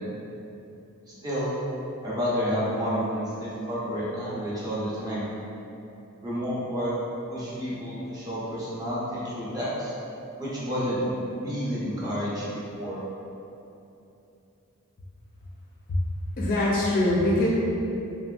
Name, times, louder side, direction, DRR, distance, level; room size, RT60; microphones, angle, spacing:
voice 1, 1.2-1.5 2.0-5.3 6.2-6.9 7.3-9.9 10.4-13.0, equal, 15° right, -9 dB, 0.6 m, -30 dB
voice 2, 16.4-17.5, left 1 dB, 40° left, -5 dB, 0.3 m, -23 dB
3.1 x 2.5 x 2.3 m, 2.8 s
head